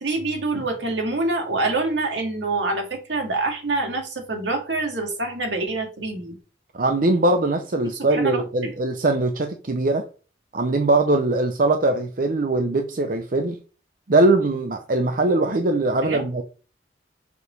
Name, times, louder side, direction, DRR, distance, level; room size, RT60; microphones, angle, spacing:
voice 1, 0.0-6.3 7.9-8.4 16.0-16.2, right 2 dB, 75° right, 2.0 m, -26 dB
voice 2, 6.7-10.1 10.5-13.6 14.1-16.4, right 2 dB, 45° right, 0.6 m, -21 dB
6.8 x 4.7 x 5.2 m
head